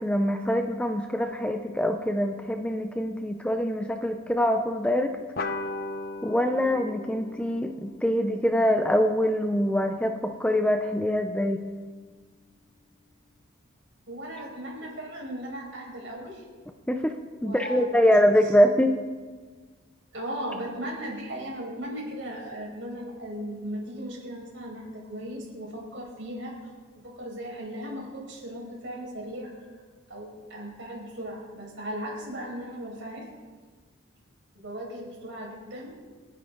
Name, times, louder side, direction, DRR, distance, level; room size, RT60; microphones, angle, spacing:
voice 1, 0.0-5.2 6.2-11.6 16.9-17.2 17.4-18.9, equal, 5° left, 5 dB, 0.6 m, -24 dB
sound 1, 5.4-10.3, left 2 dB, 45° left, 0.8 m, -38 dB
voice 2, 14.1-16.4 17.4-18.1 18.4-18.5 20.1-26.5 26.9-29.5 30.1-33.2 34.5-35.9, equal, 60° right, -3 dB, 5.7 m, -37 dB
29.0 x 9.9 x 3.9 m, 1.4 s
head